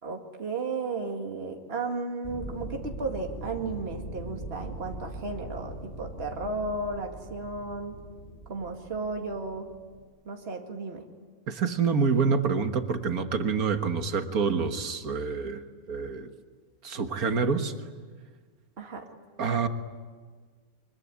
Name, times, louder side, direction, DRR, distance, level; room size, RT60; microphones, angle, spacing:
voice 1, 0.0-8.0 8.5-9.7 10.2-11.1 18.8-19.1, right 3 dB, 45° right, 2 dB, 2.3 m, -34 dB
sound 1, 2.2-10.0, right 1 dB, 50° left, 6.4 m, -41 dB
voice 2, 11.5-15.6 15.9-16.3 16.8-17.7 19.4-19.7, right 5 dB, 90° right, 7 dB, 1.9 m, -27 dB
24.5 x 22.5 x 9.8 m, 1.5 s
omnidirectional pair, 1.5 m